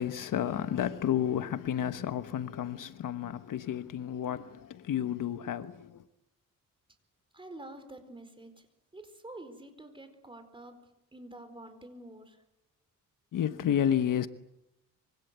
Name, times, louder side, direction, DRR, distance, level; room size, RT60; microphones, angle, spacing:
voice 1, 0.0-6.0 13.3-14.3, left 10 dB, 70° left, 1.2 m, -31 dB
voice 2, 7.3-8.7 8.9-10.8 11.1-12.4, right 1 dB, 15° right, 4.5 m, -48 dB
25.5 x 24.5 x 8.3 m
cardioid pair, 120°, 33 cm